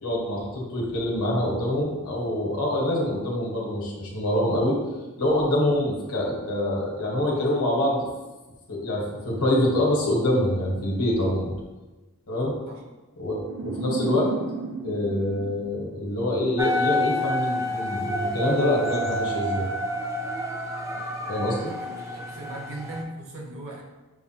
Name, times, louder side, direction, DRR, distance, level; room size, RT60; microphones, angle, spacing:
voice 1, 0.0-4.8 5.2-8.1 8.7-11.5 12.3-12.5 13.2-14.3 14.8-19.7 21.3-21.7, left 1 dB, 70° left, -3 dB, 1.3 m, -25 dB
sound 1, 13.3-16.5, right 3 dB, 80° right, 0.5 m, -34 dB
sound 2, 16.6-23.0, left 1 dB, 15° right, 0.4 m, -29 dB
voice 2, 21.7-23.8, right 1 dB, 60° right, -1 dB, 0.9 m, -39 dB
6.8 x 2.3 x 2.8 m, 1.1 s
head